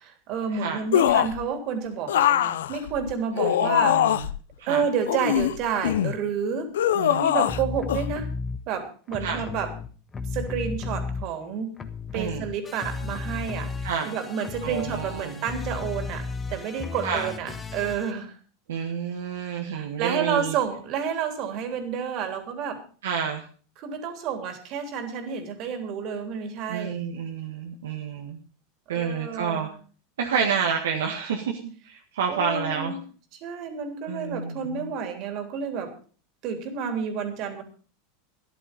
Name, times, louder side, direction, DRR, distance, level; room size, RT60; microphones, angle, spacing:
voice 1, 0.0-4.2 4.7-6.7 7.2-8.3 8.7-9.7 10.3-11.8 12.1-16.2 16.5-18.3 19.7-22.8 23.8-27.0 28.9-29.7 32.3-33.0 33.4-35.9 36.4-37.6, right 7 dB, 50° right, 7 dB, 3.3 m, -30 dB
voice 2, 0.5-0.8 3.3-4.3 4.6-4.8 6.9-7.4 9.2-9.4 12.1-12.5 13.8-14.2 14.6-15.4 17.0-17.3 18.7-20.5 23.0-23.4 26.7-28.4 28.9-29.7 30.2-33.0 34.0-34.9, right 6 dB, 75° right, 1 dB, 1.7 m, -29 dB
sound 1, 0.9-1.4 2.1-4.4 5.1-6.2 6.7-7.6 7.9-8.0, left 11 dB, 75° left, 0.6 m, -22 dB
sound 2, 7.5-8.6 9.1-11.5 11.8-18.1, left 4 dB, 20° left, 1.5 m, -34 dB
13.5 x 11.0 x 5.3 m, 0.40 s
hypercardioid pair, 95°, 0 cm